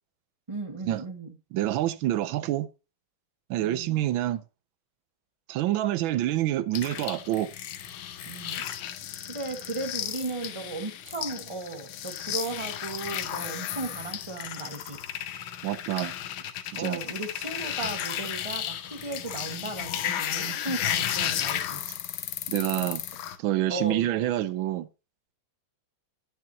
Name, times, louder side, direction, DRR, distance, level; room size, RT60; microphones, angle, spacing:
voice 1, 0.5-1.3 3.6-4.1 8.2-8.7 9.3-15.0 16.7-21.8 23.7-24.2, right 3 dB, 20° right, 1.3 m, -36 dB
voice 2, 1.5-2.7 3.5-4.4 5.5-7.5 15.6-16.1 16.7-17.0 22.5-23.0 23.4-24.9, right 13 dB, 80° right, 1.4 m, -27 dB
sound 1, 6.7-23.4, left 10 dB, 85° left, 1.7 m, -34 dB
9.7 x 9.3 x 2.8 m
omnidirectional pair, 2.2 m